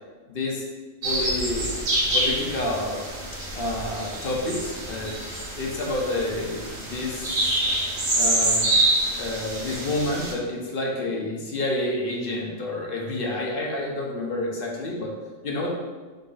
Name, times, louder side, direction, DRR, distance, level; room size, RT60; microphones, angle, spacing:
voice 1, 0.3-0.6 1.0-1.8 2.1-3.1 3.5-7.6 8.1-8.7 9.2-15.1 15.4-15.7, left 1 dB, 50° left, -2 dB, 0.8 m, -29 dB
sound 1, 1.0-10.3, right 1 dB, 75° right, 1.5 m, -26 dB
3.9 x 3.1 x 3.9 m, 1.3 s
omnidirectional pair, 1.4 m